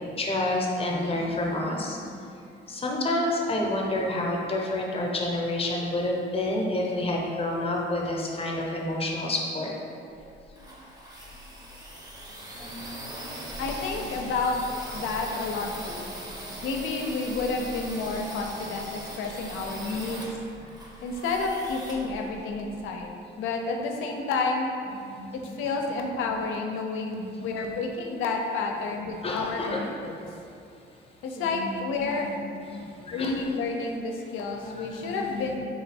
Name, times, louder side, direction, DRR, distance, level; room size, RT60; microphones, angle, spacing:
voice 1, 0.2-2.2 2.7-9.7 12.6-13.3 16.4-16.5 18.1-18.2 19.9-20.0 25.1-25.7 27.1-27.5 28.6-28.7 29.2-29.8 30.2-30.4 31.3-32.3 32.7-33.4 34.6-35.6, left 1 dB, 30° left, -1 dB, 0.6 m, -30 dB
sound 1, 10.2-22.9, right 1 dB, 20° right, 0.6 m, -40 dB
voice 2, 13.6-14.6 14.9-16.1 16.6-20.3 21.0-24.7 25.3-30.2 31.2-32.3 33.1-35.6, left 3 dB, 90° left, 2 dB, 0.5 m, -30 dB
3.5 x 2.2 x 4.1 m, 2.5 s
cardioid pair, 90°, 20 cm